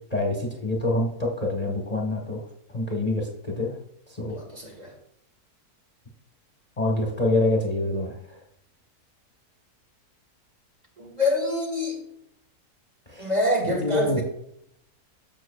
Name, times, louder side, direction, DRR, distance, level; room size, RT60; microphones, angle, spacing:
voice 1, 0.1-2.4 2.7-3.8 4.1-4.4 6.8-8.4 13.1-13.3 13.6-14.2, left 2 dB, 25° left, 0 dB, 1.2 m, -26 dB
voice 2, 4.3-4.9 11.0-12.0 13.2-14.2, left 1 dB, 25° right, -1 dB, 2.0 m, -26 dB
13.5 x 6.0 x 2.3 m, 0.74 s
omnidirectional pair, 1.6 m